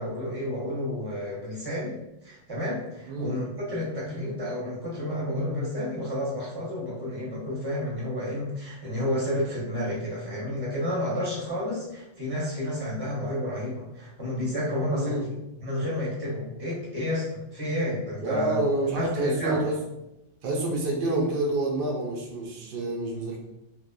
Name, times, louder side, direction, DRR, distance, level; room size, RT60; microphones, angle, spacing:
voice 1, 0.0-15.2 15.6-18.6 19.0-19.6, left 1 dB, 25° right, -6 dB, 0.7 m, -31 dB
voice 2, 3.1-3.4 14.9-15.2 18.2-19.8 20.4-23.4, right 2 dB, 60° right, -1 dB, 0.6 m, -28 dB
2.9 x 2.1 x 2.2 m, 0.91 s
omnidirectional pair, 1.3 m